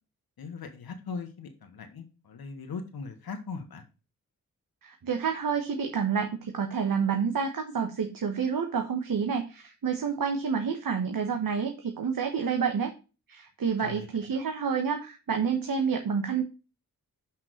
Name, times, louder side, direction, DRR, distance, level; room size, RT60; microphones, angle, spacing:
voice 1, 0.4-3.8 13.8-14.1 14.3-14.4, left 5 dB, 85° left, 6 dB, 1.4 m, -39 dB
voice 2, 4.8-12.9 13.3-16.4, right 6 dB, 65° right, 5 dB, 1.3 m, -29 dB
5.9 x 5.8 x 6.5 m, 0.32 s
cardioid pair, 45°, 36 cm